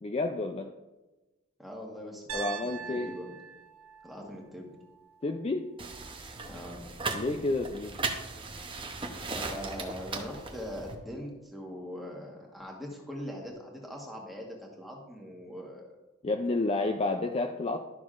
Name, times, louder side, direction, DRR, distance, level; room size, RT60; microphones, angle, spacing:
voice 1, 0.0-0.7 2.3-3.1 5.2-5.7 7.1-8.0 16.2-17.8, left 2 dB, 30° left, 5 dB, 0.3 m, -30 dB
voice 2, 1.6-3.3 4.0-4.7 6.5-6.9 9.3-15.9, equal, ahead, -2 dB, 1.3 m, -41 dB
Piano, 2.3-6.4, right 6 dB, 85° right, 1.0 m, -44 dB
sound 1, 5.8-11.0, right 3 dB, 25° right, 0.7 m, -37 dB
11.5 x 6.1 x 2.5 m, 1.1 s
head